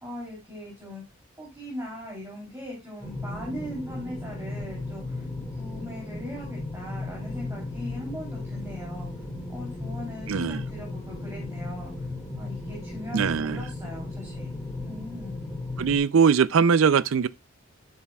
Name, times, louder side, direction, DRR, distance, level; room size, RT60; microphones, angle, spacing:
voice 1, 0.0-1.0 1.4-5.3 5.5-9.1 9.5-12.1 12.4-14.5 14.8-15.4, left 1 dB, 15° right, 3.3 m, -39 dB
sound 1, 3.0-16.0, left 2 dB, 15° left, 2.1 m, -36 dB
voice 2, 10.3-10.6 13.1-13.6 15.8-17.3, right 6 dB, 70° right, 0.4 m, -21 dB
9.9 x 7.5 x 2.3 m
head